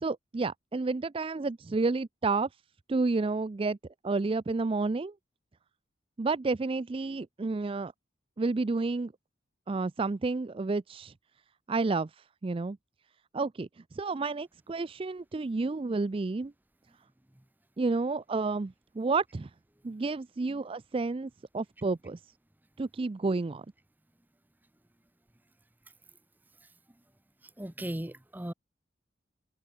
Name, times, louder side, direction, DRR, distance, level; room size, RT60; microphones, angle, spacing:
voice 1, 0.0-2.5 2.9-3.8 4.0-5.1 6.2-7.9 8.4-9.1 9.7-11.1 11.7-12.8 13.3-16.5 17.8-19.5 19.8-22.2 22.8-23.7, right 3 dB, 30° right, 0.4 m, -30 dB
voice 2, 27.6-28.5, right 1 dB, 10° right, 0.7 m, -36 dB
head